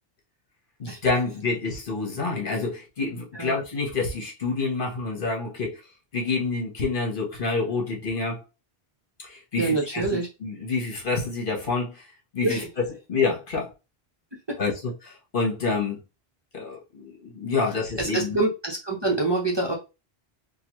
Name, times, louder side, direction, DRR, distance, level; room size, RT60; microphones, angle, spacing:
voice 1, 0.8-5.8 6.1-8.4 9.2-12.0 12.3-13.7 14.6-16.0 16.5-18.4, left 4 dB, 55° left, 1.2 m, -28 dB
voice 2, 9.6-10.3 12.4-12.7 14.5-14.6 18.0-19.7, right 2 dB, 30° right, 0.7 m, -25 dB
3.9 x 2.3 x 3.0 m
omnidirectional pair, 1.1 m